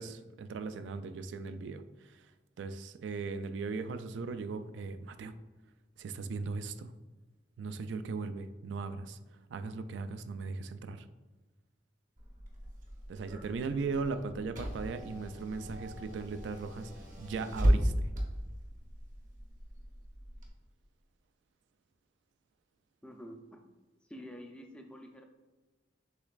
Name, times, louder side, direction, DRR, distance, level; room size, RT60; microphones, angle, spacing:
voice 1, 0.0-2.3 2.6-5.3 6.0-6.9 7.6-9.2 9.5-11.1 13.1-16.9 17.2-18.1, right 4 dB, 85° right, 11 dB, 0.3 m, -38 dB
Car / Engine, 12.2-20.5, equal, 45° right, 0.8 m, -35 dB
voice 2, 23.0-23.6 24.0-25.2, equal, 5° left, 3 dB, 0.4 m, -48 dB
6.5 x 3.0 x 2.4 m, 1.2 s
head